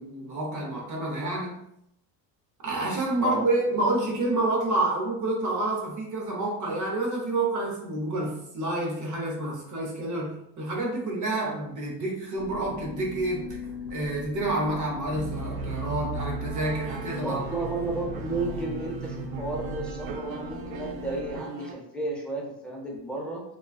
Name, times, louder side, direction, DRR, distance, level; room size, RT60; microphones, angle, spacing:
voice 1, 0.0-1.6 2.6-13.6 13.9-17.4, right 2 dB, 35° right, -2 dB, 0.9 m, -28 dB
sound 1, 12.3-21.4, left 3 dB, 60° left, 0.9 m, -40 dB
sound 2, 15.0-21.7, right 5 dB, 65° right, 0.5 m, -37 dB
voice 2, 17.2-23.4, right 2 dB, ahead, -2 dB, 0.6 m, -33 dB
2.3 x 2.3 x 2.3 m, 0.74 s
hypercardioid pair, 85°, 50 cm